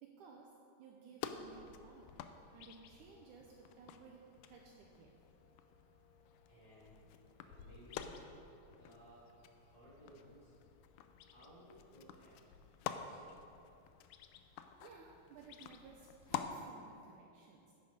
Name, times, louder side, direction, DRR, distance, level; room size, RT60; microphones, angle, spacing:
voice 1, 0.0-0.5 0.8-2.1 2.5-5.2 14.8-17.7, right 5 dB, 80° right, 0 dB, 1.9 m, -58 dB
sound 1, 1.2-16.5, left 9 dB, 85° left, 1.8 m, -50 dB
sound 2, 1.3-12.3, left 4 dB, 35° right, 3.0 m, -73 dB
voice 2, 6.5-7.0 7.3-8.3 8.7-10.5 11.2-12.4 12.8-13.4, equal, 35° left, -8 dB, 2.6 m, -60 dB
10.5 x 8.4 x 5.0 m, 2.6 s
omnidirectional pair, 4.1 m